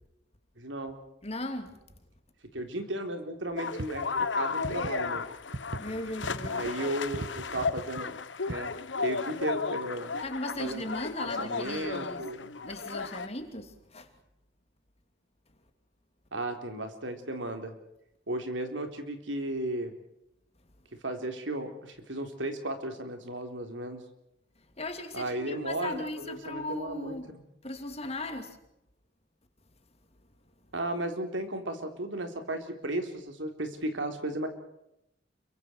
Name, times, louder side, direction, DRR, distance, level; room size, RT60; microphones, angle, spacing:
voice 1, 0.6-1.0 2.5-4.1 4.3-5.2 6.5-8.2 8.5-8.7 9.0-10.1 10.6-10.8 11.2-12.5 16.3-17.7 18.3-19.9 21.0-24.0 25.1-27.4 30.7-34.5, right 1 dB, 80° right, 6 dB, 3.8 m, -35 dB
voice 2, 1.2-1.8 5.8-6.9 10.2-12.3 12.7-14.1 24.8-27.3 27.6-28.6, left 2 dB, 35° left, 7 dB, 2.8 m, -37 dB
sound 1, 3.6-13.3, left 4 dB, 75° left, 1.2 m, -34 dB
sound 2, 3.7-5.2 5.5-5.8 6.1-6.7 7.1-8.0 8.5-8.6 9.5-9.6, right 2 dB, 65° right, 1.5 m, -38 dB
29.0 x 24.0 x 4.6 m, 0.82 s
head